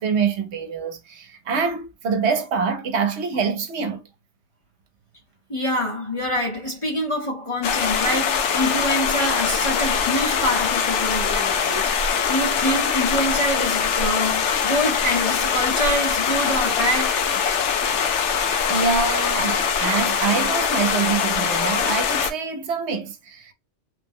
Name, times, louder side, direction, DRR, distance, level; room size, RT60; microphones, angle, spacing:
voice 1, 0.0-4.0 18.7-23.5, right 5 dB, 70° right, 1.0 m, -25 dB
voice 2, 5.5-17.2, equal, 30° left, 0.8 m, -26 dB
sound 1, 7.6-22.3, left 7 dB, 80° left, 0.9 m, -22 dB
3.3 x 2.1 x 3.5 m
omnidirectional pair, 1.2 m